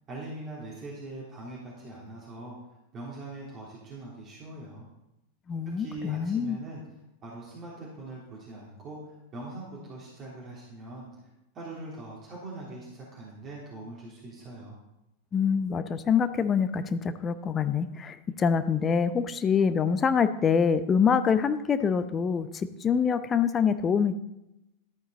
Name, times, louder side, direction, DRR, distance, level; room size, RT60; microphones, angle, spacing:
voice 1, 0.1-2.6 2.9-4.8 5.8-11.1 11.5-14.8, right 2 dB, 30° right, -6 dB, 3.3 m, -42 dB
voice 2, 5.5-6.6 15.3-24.1, left 6 dB, 20° left, 11 dB, 0.7 m, -25 dB
13.5 x 9.2 x 4.0 m, 0.91 s
figure-of-eight pair, 90°, 0 cm